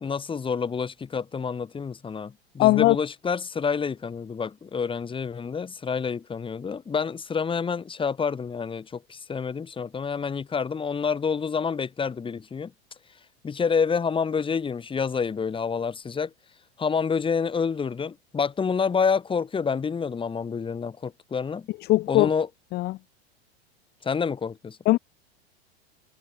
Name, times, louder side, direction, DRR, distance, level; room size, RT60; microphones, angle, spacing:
voice 1, 0.0-12.7 13.4-16.3 16.8-21.7 22.1-22.5 24.0-24.8, left 6 dB, 15° left, 1.8 m, -28 dB
voice 2, 2.6-3.0 21.9-22.3 22.7-23.0 24.9-25.0, left 18 dB, 30° left, 0.7 m, -19 dB
figure-of-eight pair, 90°, 32 cm